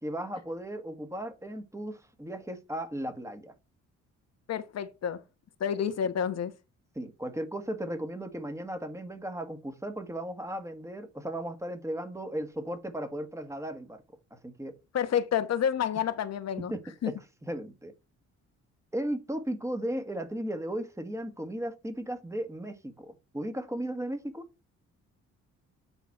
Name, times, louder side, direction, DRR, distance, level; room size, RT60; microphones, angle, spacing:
voice 1, 0.0-3.5 6.9-14.0 14.3-14.7 16.0-16.1 16.7-17.9 18.9-24.5, right 1 dB, 10° right, 1.6 m, -36 dB
voice 2, 4.5-5.2 5.6-6.5 14.9-16.7 17.0-17.1, left 8 dB, 55° left, 1.1 m, -29 dB
9.1 x 4.0 x 4.8 m
cardioid pair, 90°, 30 cm